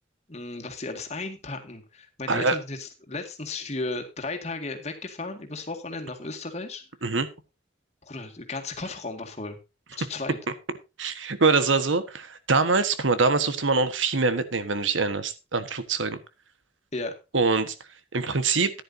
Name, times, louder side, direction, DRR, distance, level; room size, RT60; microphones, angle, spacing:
voice 1, 0.3-6.8 8.0-9.6 10.0-10.4 16.9-17.1, left 3 dB, 35° left, 4 dB, 2.0 m, -35 dB
voice 2, 11.0-16.2 17.3-17.7 18.1-18.7, right 4 dB, 85° right, 12 dB, 1.4 m, -24 dB
15.0 x 10.5 x 2.7 m, 0.27 s
head